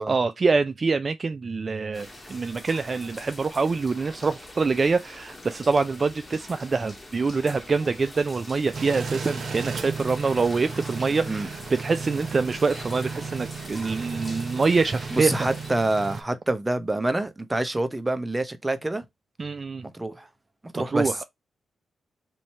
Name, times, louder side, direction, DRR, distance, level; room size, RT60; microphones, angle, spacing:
voice 1, 0.1-15.5 19.4-19.8 20.9-21.2, right 4 dB, 40° right, 0.3 m, -25 dB
sound 1, 1.9-15.7, left 1 dB, 20° left, 1.5 m, -43 dB
sound 2, 8.7-16.2, right 5 dB, 60° right, 0.7 m, -35 dB
voice 2, 15.1-19.0 19.9-20.3 20.7-21.2, right 2 dB, 15° right, 0.7 m, -26 dB
3.1 x 2.7 x 4.2 m
cardioid pair, 70°, 0 cm